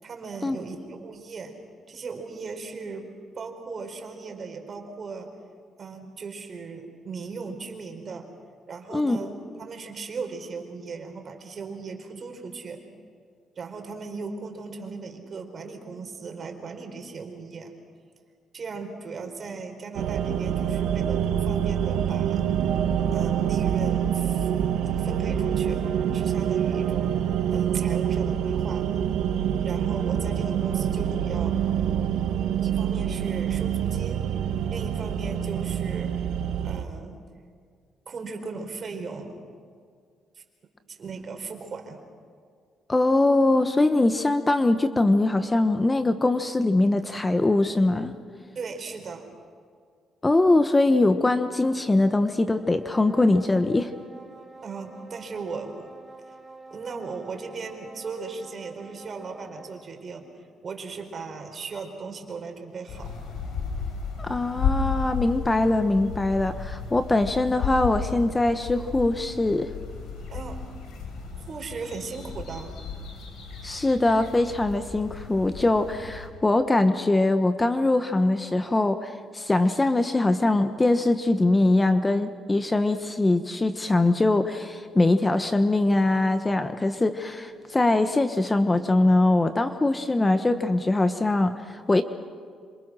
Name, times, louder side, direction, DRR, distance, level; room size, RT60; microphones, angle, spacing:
voice 1, 0.0-1.6 1.9-3.1 3.3-5.3 5.8-8.3 8.7-12.8 13.6-17.7 18.5-22.4 23.1-24.5 24.9-25.8 26.1-27.2 27.5-28.9 29.6-31.6 32.6-34.3 34.7-36.1 36.6-37.2 38.1-39.4 40.4-40.5 40.9-42.0 48.5-49.2 54.6-55.9 56.7-60.3 60.6-63.2 70.3-70.6 71.4-72.8, right 4 dB, 45° right, 5 dB, 4.4 m, -37 dB
sound 1, 19.9-36.8, right 9 dB, 90° right, 1.6 m, -26 dB
voice 2, 42.9-48.1 50.2-53.9 64.2-69.7 73.6-92.0, left 2 dB, 20° left, 9 dB, 1.2 m, -22 dB
sound 2, 52.5-59.9, right 3 dB, 25° right, 7.5 m, -47 dB
sound 3, 62.9-76.3, left 5 dB, 80° left, 5.5 m, -34 dB
27.5 x 26.5 x 6.4 m, 2.1 s
cardioid pair, 90°, 0 cm